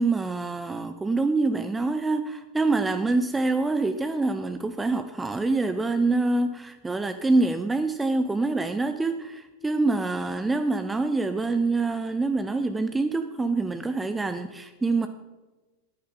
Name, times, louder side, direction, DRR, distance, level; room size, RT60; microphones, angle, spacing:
voice 1, 0.0-15.1, right 3 dB, 10° right, 9 dB, 0.5 m, -25 dB
14.0 x 10.5 x 3.8 m, 1.2 s
figure-of-eight pair, 90°, 0 cm